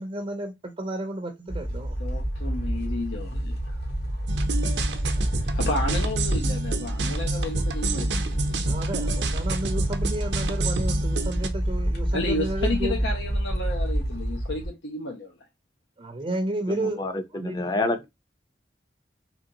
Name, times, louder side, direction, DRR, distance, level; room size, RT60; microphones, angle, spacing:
voice 1, 0.0-2.0 8.7-13.0 16.0-17.7, right 1 dB, 30° right, 0.5 m, -32 dB
sound 1, 1.5-14.7, equal, 65° left, 1.4 m, -28 dB
voice 2, 2.0-3.5 5.5-8.7 12.1-15.3, left 2 dB, 90° left, 0.9 m, -32 dB
sound 2, 4.3-11.5, right 3 dB, 80° right, 0.7 m, -30 dB
voice 3, 16.7-18.1, left 2 dB, 25° left, 0.6 m, -28 dB
3.9 x 2.9 x 2.7 m
head